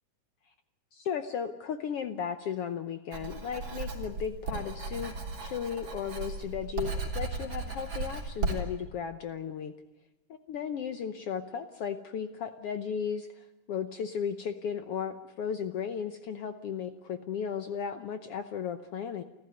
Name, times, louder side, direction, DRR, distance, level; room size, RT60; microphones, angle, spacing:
voice 1, 0.9-5.1 5.4-9.7 10.5-19.2, left 7 dB, 70° left, 9 dB, 1.4 m, -35 dB
Writing, 3.1-8.6, right 3 dB, 45° right, 4.1 m, -35 dB
29.5 x 13.0 x 9.5 m, 1.0 s
omnidirectional pair, 3.7 m